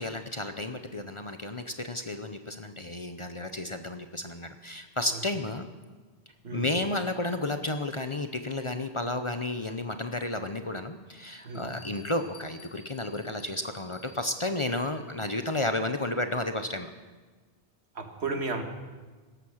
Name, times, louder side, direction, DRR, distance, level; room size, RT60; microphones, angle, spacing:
voice 1, 0.0-5.7 6.5-16.9, left 2 dB, 30° left, 8 dB, 0.7 m, -32 dB
Bell, 11.2-15.7, left 4 dB, 60° left, 4.2 m, -55 dB
voice 2, 18.0-18.6, right 3 dB, 75° right, 5 dB, 1.8 m, -33 dB
17.0 x 13.0 x 6.4 m, 1.4 s
omnidirectional pair, 1.1 m